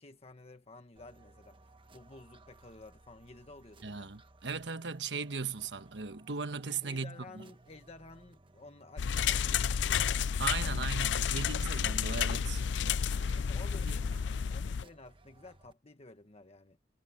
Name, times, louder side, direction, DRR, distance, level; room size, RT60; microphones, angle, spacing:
voice 1, 0.0-4.1 6.8-10.1 10.6-11.0 13.3-16.8, left 2 dB, 35° left, 1.3 m, -53 dB
sound 1, 1.0-15.7, right 2 dB, 30° right, 1.2 m, -60 dB
voice 2, 3.8-7.4 10.4-12.7 13.2-13.4 13.9-14.0, right 5 dB, 75° right, 1.3 m, -38 dB
sound 2, 9.0-14.8, left 7 dB, 75° left, 0.4 m, -31 dB
head